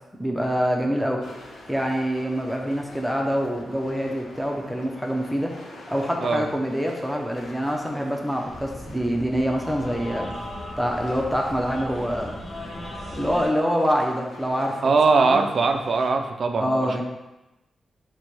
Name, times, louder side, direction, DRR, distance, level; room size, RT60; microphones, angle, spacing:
voice 1, 0.2-1.2 1.7-5.5 5.9-10.3 10.8-12.3 13.1-15.4 16.6-17.0, equal, ahead, 0 dB, 0.6 m, -25 dB
sound 1, 1.2-16.1, left 1 dB, 85° left, 0.8 m, -45 dB
sound 2, 8.5-13.5, left 1 dB, 45° left, 1.1 m, -38 dB
voice 2, 14.8-17.0, right 4 dB, 55° right, 5 dB, 0.4 m, -21 dB
4.2 x 2.2 x 4.6 m, 1.0 s
cardioid pair, 95°, 0 cm